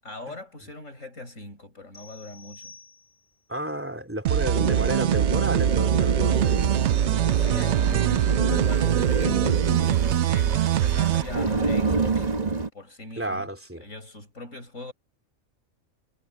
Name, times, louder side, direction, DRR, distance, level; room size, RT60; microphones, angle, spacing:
voice 1, 0.0-2.8 7.3-12.2 12.7-13.5 13.8-14.9, left 2 dB, 70° left, 7.9 m, -41 dB
sound 1, 1.9-3.5, left 4 dB, 15° left, 3.8 m, -49 dB
voice 2, 3.5-6.6 13.2-13.8, right 1 dB, 10° right, 3.3 m, -31 dB
sound 2, 4.3-11.2, right 11 dB, 65° right, 0.8 m, -23 dB
sound 3, 4.5-12.7, right 3 dB, 30° right, 1.5 m, -28 dB
omnidirectional pair, 1.4 m